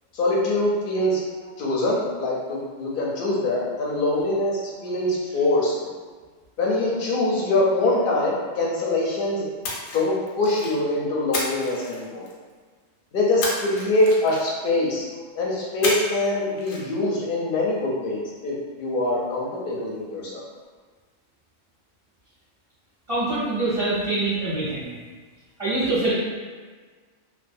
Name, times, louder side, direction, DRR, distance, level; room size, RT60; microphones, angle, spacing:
voice 1, 0.1-1.2 1.6-5.7 6.6-9.5 9.9-12.3 13.1-15.1 15.4-20.4, left 2 dB, 60° left, -4 dB, 0.6 m, -24 dB
Splash splatter, 9.6-10.8 11.3-12.5 13.4-14.7 15.8-16.3 16.6-16.8, left 2 dB, 85° left, 1.0 m, -30 dB
voice 2, 23.1-24.9 25.6-26.2, right 2 dB, 35° right, -13 dB, 0.7 m, -24 dB
2.4 x 2.2 x 2.5 m, 1.5 s
omnidirectional pair, 1.3 m